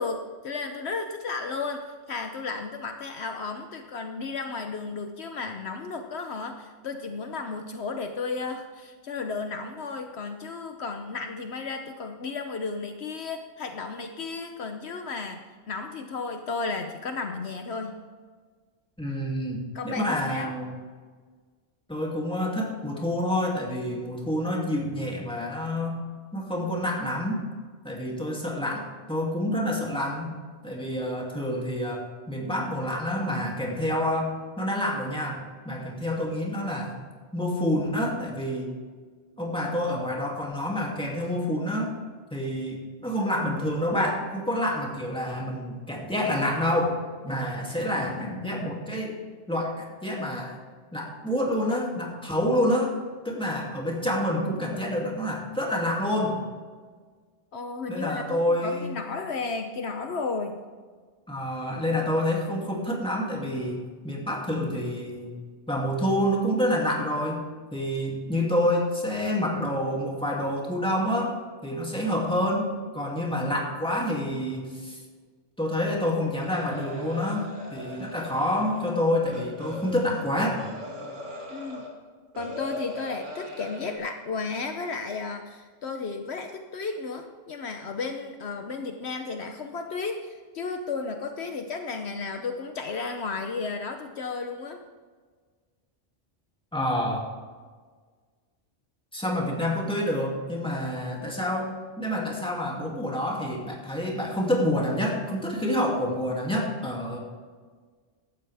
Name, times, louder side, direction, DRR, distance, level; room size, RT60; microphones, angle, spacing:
voice 1, 0.0-18.0 19.7-20.5 57.5-60.6 81.5-81.9 82.4-94.8, left 4 dB, 65° left, 5 dB, 1.1 m, -33 dB
voice 2, 19.0-20.7 21.9-26.0 26.3-27.4 27.8-30.4 30.6-37.0 37.3-38.7 39.4-41.9 42.3-47.0 47.2-49.2 49.5-50.6 50.9-53.0 53.2-56.4 57.9-59.0 61.3-63.8 64.0-65.3 65.7-67.5 67.7-75.0 75.6-80.6 96.7-97.3 99.1-107.2, left 1 dB, 5° left, -2 dB, 2.5 m, -28 dB
sound 1, 76.4-81.9 82.3-84.0, left 1 dB, 85° right, 2.8 m, -39 dB
16.0 x 12.0 x 3.5 m, 1.5 s
omnidirectional pair, 1.2 m